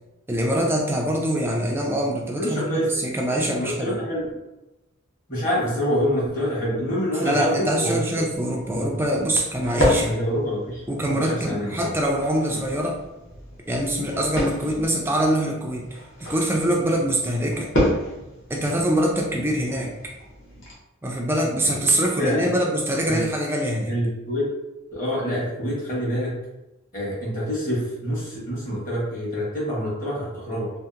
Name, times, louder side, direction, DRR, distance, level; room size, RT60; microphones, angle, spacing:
voice 1, 0.3-4.0 7.1-10.2 10.9-13.0 13.7-15.8 16.2-17.7 18.5-19.9 21.0-23.9, right 1 dB, 10° right, 0 dB, 0.3 m, -24 dB
voice 2, 2.4-2.8 3.6-4.2 5.3-8.0 10.1-10.8 11.3-11.9 21.6-21.8 22.1-22.4 23.1-23.3 23.9-24.5 24.9-26.3 26.9-30.7, equal, 40° left, -6 dB, 1.1 m, -26 dB
sound 1, 8.3-20.7, equal, 60° left, 0.8 m, -30 dB
2.8 x 2.5 x 2.4 m, 0.99 s
head